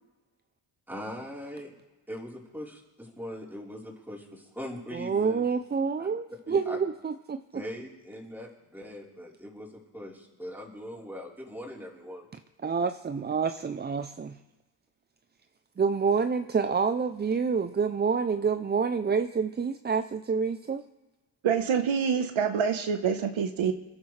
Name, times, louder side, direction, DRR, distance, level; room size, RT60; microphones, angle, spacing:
voice 1, 0.9-1.7 2.1-5.4 6.5-6.8 7.5-12.3, equal, 5° right, 3.9 m, -41 dB
voice 2, 4.9-7.6 12.6-14.4 15.8-20.9, right 5 dB, 25° right, 0.4 m, -28 dB
voice 3, 21.4-23.7, right 7 dB, 75° right, 1.1 m, -26 dB
28.0 x 11.0 x 3.2 m
cardioid pair, 90°, 49 cm